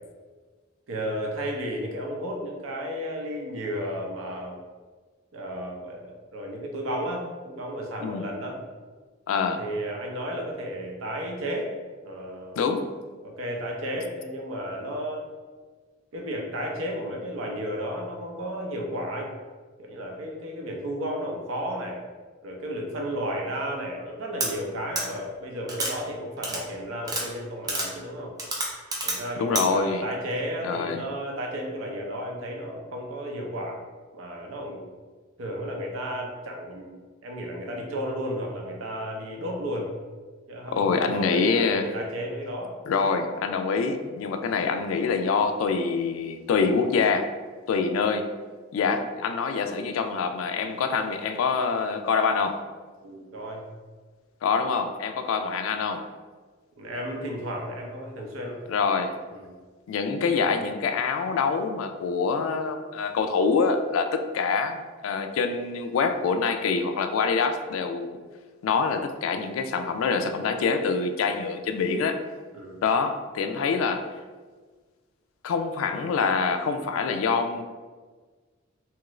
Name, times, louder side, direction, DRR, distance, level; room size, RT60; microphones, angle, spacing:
voice 1, 0.9-4.6 5.3-8.6 9.6-11.7 12.0-12.6 13.2-15.2 16.1-19.3 19.8-22.0 22.4-28.3 29.0-33.8 34.1-34.8 35.4-36.9 37.2-39.9 40.5-42.7 53.0-53.7 56.8-58.6 59.3-59.5 72.5-72.8, equal, 85° right, 0 dB, 0.6 m, -33 dB
voice 2, 9.3-9.6 12.6-12.9 29.3-30.1 30.6-31.0 40.7-41.8 42.9-47.3 47.7-48.3 48.7-52.6 54.4-56.1 58.7-59.2 59.9-68.2 68.6-72.2 72.8-74.1 75.4-77.6, left 5 dB, 85° left, 8 dB, 0.3 m, -25 dB
sound 1, 24.4-24.5 24.9-25.0 25.7-25.9 26.4-26.6 27.0-27.2 27.7-27.9 28.4-29.2 29.5-29.6, right 2 dB, 20° right, 0.4 m, -28 dB
2.9 x 2.4 x 3.0 m, 1.4 s
head